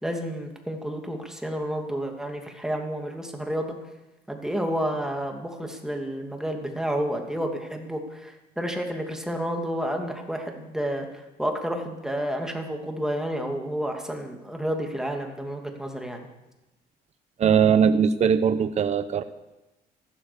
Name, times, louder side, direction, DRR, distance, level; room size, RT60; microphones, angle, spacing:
voice 1, 0.0-3.7 4.3-16.3, equal, 5° right, 3 dB, 2.6 m, -30 dB
voice 2, 17.4-19.2, right 7 dB, 40° right, 11 dB, 0.9 m, -20 dB
14.5 x 12.5 x 7.0 m, 1.0 s
cardioid pair, 110°, 17 cm